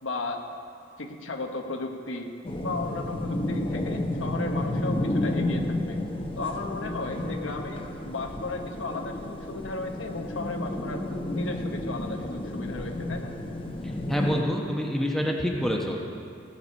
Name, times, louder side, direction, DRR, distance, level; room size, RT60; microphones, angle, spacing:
voice 1, 0.0-0.4 1.0-2.3 2.6-6.0 6.4-11.0 11.3-13.3, left 3 dB, 90° left, 3 dB, 1.1 m, -35 dB
sound 1, 2.4-14.4, left 1 dB, 30° left, 0.8 m, -31 dB
voice 2, 14.1-16.1, equal, ahead, 0 dB, 0.9 m, -26 dB
16.5 x 6.8 x 5.4 m, 2.5 s
head